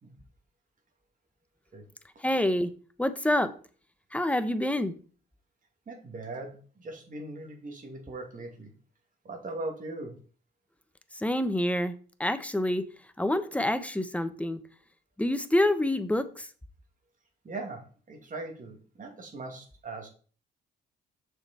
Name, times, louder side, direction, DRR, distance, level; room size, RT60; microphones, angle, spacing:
voice 1, 2.2-2.7 3.0-3.5 4.1-5.0 11.2-11.9 12.2-12.8 13.2-14.6 15.2-16.5, left 1 dB, 5° left, 11 dB, 0.9 m, -27 dB
voice 2, 5.9-8.7 9.2-10.2 17.4-20.1, right 2 dB, 40° right, 3 dB, 2.6 m, -40 dB
6.6 x 6.6 x 4.3 m, 0.39 s
cardioid pair, 90°, 20 cm